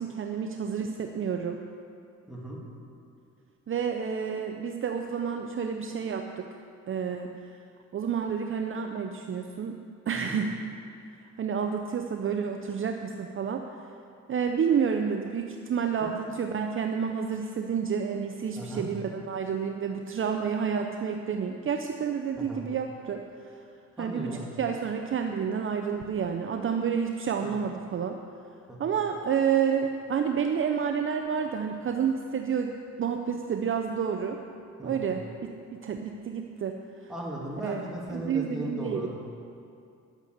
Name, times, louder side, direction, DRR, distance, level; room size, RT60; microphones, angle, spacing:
voice 1, 0.0-1.6 3.7-6.5 6.9-7.3 7.9-9.7 10.1-10.5 11.4-13.6 14.3-23.2 24.0-28.2 28.8-34.4 34.8-36.8 37.0-37.1 37.6-39.1, right 7 dB, 45° right, 4 dB, 0.7 m, -29 dB
voice 2, 2.3-2.6 10.1-10.4 16.0-16.1 18.6-18.9 22.3-22.6 24.0-24.5 27.4-27.5 28.7-28.9 34.8-35.1 37.1-39.1, right 1 dB, ahead, -5 dB, 2.8 m, -37 dB
10.5 x 8.1 x 6.6 m, 2.5 s
cardioid pair, 90°, 30 cm